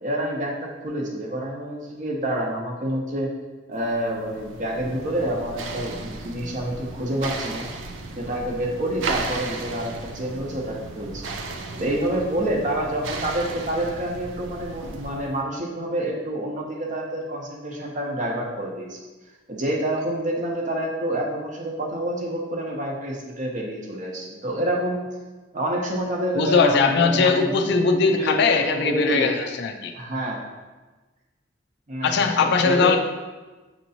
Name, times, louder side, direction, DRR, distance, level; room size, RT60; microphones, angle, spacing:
voice 1, 0.0-3.3 3.7-7.7 8.2-11.3 11.8-19.0 19.5-25.0 25.5-27.7 28.0-29.4 29.9-30.4 31.9-33.0, right 1 dB, 40° right, -1 dB, 0.8 m, -28 dB
sound 1, 3.9-15.4, right 3 dB, 85° right, 0.4 m, -35 dB
voice 2, 26.4-29.9 32.0-33.0, left 4 dB, 65° left, 5 dB, 0.4 m, -20 dB
6.5 x 2.9 x 2.7 m, 1.2 s
head